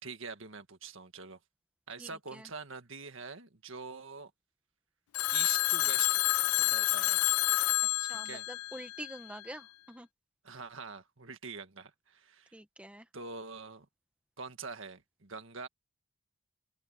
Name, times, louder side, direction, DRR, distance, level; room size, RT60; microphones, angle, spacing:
voice 1, 0.0-1.4 1.9-4.3 5.3-6.2 6.6-7.2 8.2-8.5 10.4-12.6 13.1-13.9 14.4-15.7, right 5 dB, 60° right, 1.8 m, -44 dB
voice 2, 2.0-2.5 8.0-10.1 12.5-13.1, right 1 dB, 5° right, 1.6 m, -46 dB
Telephone, 5.1-9.4, left 19 dB, 90° left, 0.3 m, -29 dB
open air
head